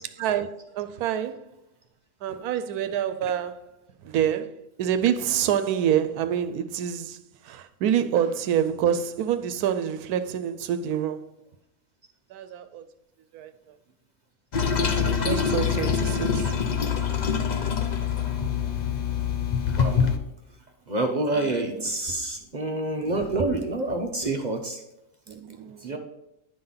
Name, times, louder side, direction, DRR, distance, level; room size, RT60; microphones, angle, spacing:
voice 1, 0.2-1.5 2.2-3.7 4.0-11.3 12.3-12.8 13.3-13.5 14.9-16.6 18.4-18.6 21.4-21.9 25.3-26.0, right 9 dB, 85° right, 1.1 m, -27 dB
Toilet flush, 14.5-20.2, left 6 dB, 50° left, 0.5 m, -25 dB
voice 2, 19.8-20.1 20.9-24.8 25.8-26.0, right 2 dB, 40° right, 0.7 m, -27 dB
10.0 x 3.9 x 5.5 m
omnidirectional pair, 1.6 m